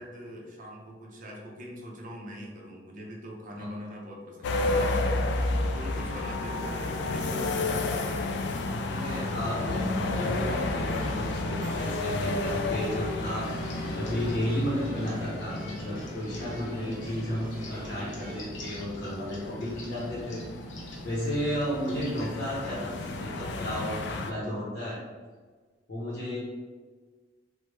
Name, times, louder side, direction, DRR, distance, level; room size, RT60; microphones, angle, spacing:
voice 1, 0.0-5.5 5.7-8.3 15.5-15.8 22.6-23.0, equal, 45° right, -1 dB, 0.6 m, -42 dB
sound 1, 4.4-24.3, left 2 dB, 65° left, 0.3 m, -32 dB
voice 2, 8.9-13.5 14.0-20.4 21.0-25.0 25.9-26.4, equal, 50° left, -7 dB, 0.7 m, -33 dB
sound 2, 10.1-18.4, right 1 dB, 20° right, 1.0 m, -46 dB
sound 3, 13.4-23.2, equal, 85° left, 0.7 m, -43 dB
3.0 x 2.0 x 3.2 m, 1.4 s
head